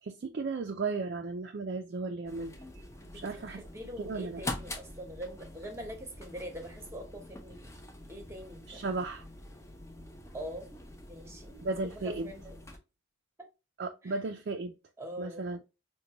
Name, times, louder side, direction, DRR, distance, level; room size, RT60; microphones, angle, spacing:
voice 1, 0.0-2.6 3.1-3.6 4.0-4.4 8.7-9.2 11.6-12.3 13.8-14.7 15.2-15.6, right 3 dB, 55° right, 0.4 m, -35 dB
sound 1, 2.3-12.8, left 1 dB, 15° left, 0.5 m, -45 dB
voice 2, 3.0-7.7 8.1-8.8 10.3-10.7 11.1-11.6 12.0-12.6 14.0-14.2 15.0-15.5, equal, 15° right, 0.9 m, -43 dB
5.1 x 2.2 x 2.8 m
head